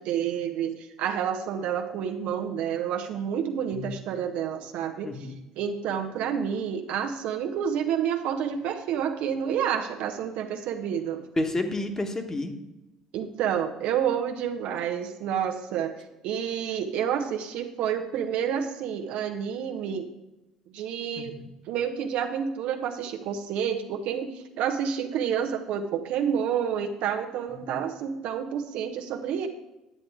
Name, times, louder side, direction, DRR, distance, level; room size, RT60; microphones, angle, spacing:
voice 1, 0.0-5.3 5.6-11.2 13.1-15.9 16.2-20.1 20.7-21.3 21.7-29.5, right 8 dB, 60° right, 5 dB, 0.9 m, -29 dB
voice 2, 5.0-5.4 11.4-12.5 21.2-21.5 27.6-27.8, left 2 dB, 20° left, 5 dB, 1.4 m, -30 dB
9.4 x 8.9 x 3.6 m, 0.94 s
hypercardioid pair, 55°, 2 cm